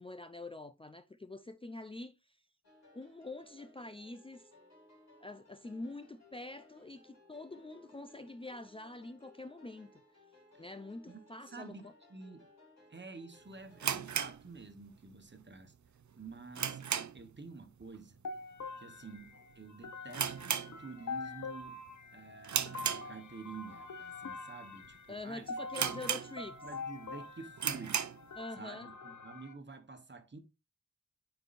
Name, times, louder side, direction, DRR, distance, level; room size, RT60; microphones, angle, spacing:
voice 1, 0.0-2.4 2.9-4.5 5.2-10.0 10.6-11.9 25.1-26.6 28.4-28.9, left 2 dB, 20° left, 0.5 m, -45 dB
sound 1, 2.6-14.3, left 2 dB, 65° left, 3.4 m, -62 dB
voice 2, 11.5-11.8 12.1-12.5 12.9-15.7 16.2-18.2 18.8-21.8 22.1-25.5 25.8-25.9 26.6-28.1 28.6-30.4, right 4 dB, 40° right, 1.2 m, -49 dB
sound 2, 13.8-15.1 15.4-15.5 16.0-17.4 17.7-18.0 18.2-18.3 19.0-19.3 19.6-19.7 20.1-21.3 21.6-21.9 22.4-23.6 24.1-24.2 24.8-24.9 25.2-25.3 25.7-26.7 27.1-27.2 27.5-28.3, right 8 dB, 75° right, 0.6 m, -35 dB
sound 3, 18.2-29.5, left 4 dB, 80° left, 0.9 m, -45 dB
9.3 x 4.6 x 2.5 m
wide cardioid pair, 75°, 29 cm